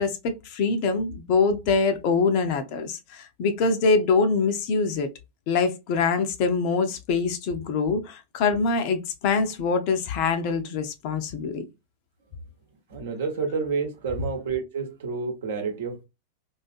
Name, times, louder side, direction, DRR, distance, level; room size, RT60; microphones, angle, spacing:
voice 1, 0.0-5.1 5.5-11.7, left 4 dB, 45° left, 0.5 m, -24 dB
voice 2, 12.9-16.0, right 5 dB, 60° right, 0.8 m, -29 dB
2.5 x 2.3 x 2.4 m
figure-of-eight pair, 90°, 0 cm